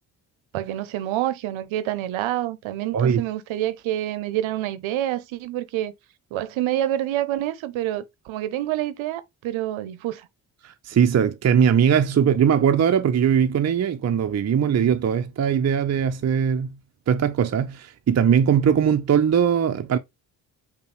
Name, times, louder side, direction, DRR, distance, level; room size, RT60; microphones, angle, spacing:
voice 1, 0.5-5.9 6.3-10.3, right 13 dB, 75° right, 0.7 m, -27 dB
voice 2, 10.6-16.7 17.1-20.0, right 8 dB, 35° right, 0.6 m, -20 dB
5.4 x 2.3 x 4.1 m
hypercardioid pair, 40°, 48 cm